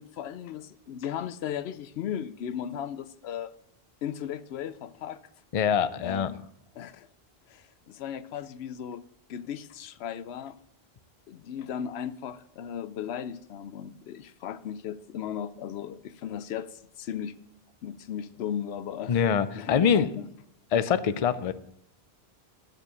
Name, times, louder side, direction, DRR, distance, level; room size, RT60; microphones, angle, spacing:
voice 1, 0.0-3.5 4.0-5.2 6.0-6.4 6.8-7.1 7.5-9.0 9.3-10.6 11.3-17.4 17.8-19.2 19.5-20.3, left 9 dB, 90° left, 0.8 m, -36 dB
voice 2, 5.5-6.3 19.1-20.1 20.7-21.5, left 7 dB, 45° left, 0.5 m, -24 dB
11.5 x 4.5 x 8.2 m
omnidirectional pair, 1.0 m